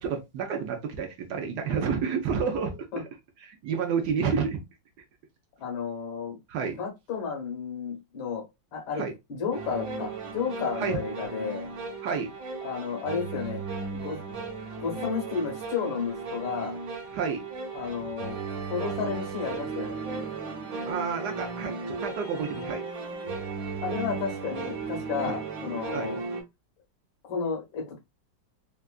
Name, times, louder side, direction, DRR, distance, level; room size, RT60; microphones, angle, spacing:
voice 1, 0.0-2.8 3.4-4.6 6.5-6.8 8.9-9.1 10.8-11.0 12.0-12.3 17.1-17.4 20.8-22.9 25.3-25.4 25.9-26.1, right 6 dB, 70° right, 1.1 m, -30 dB
voice 2, 5.6-6.4 6.8-8.4 8.7-11.7 12.6-13.6 13.9-14.2 14.8-16.8 17.7-18.4 18.7-20.0 23.8-26.2 27.2-28.0, left 6 dB, 90° left, 2.1 m, -32 dB
sound 1, 9.5-26.4, right 4 dB, 50° right, 1.4 m, -35 dB
4.4 x 2.3 x 2.3 m
omnidirectional pair, 2.1 m